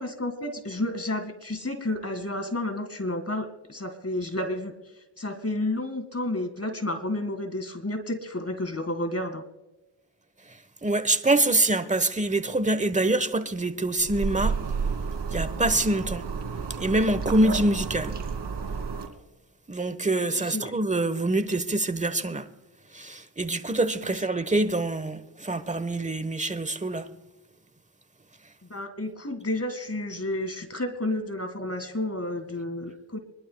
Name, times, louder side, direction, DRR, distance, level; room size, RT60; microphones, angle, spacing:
voice 1, 0.2-4.7 5.2-9.4 20.3-20.7 24.0-24.2 28.7-33.2, left 1 dB, 30° left, 2.1 m, -31 dB
voice 2, 10.8-14.6 15.3-16.2 16.8-18.2 19.7-22.5 22.9-27.1, right 2 dB, 15° right, 1.2 m, -25 dB
sound 1, 14.0-19.1, right 5 dB, 55° right, 3.1 m, -31 dB
25.5 x 12.0 x 2.3 m
cardioid pair, 50°, 50 cm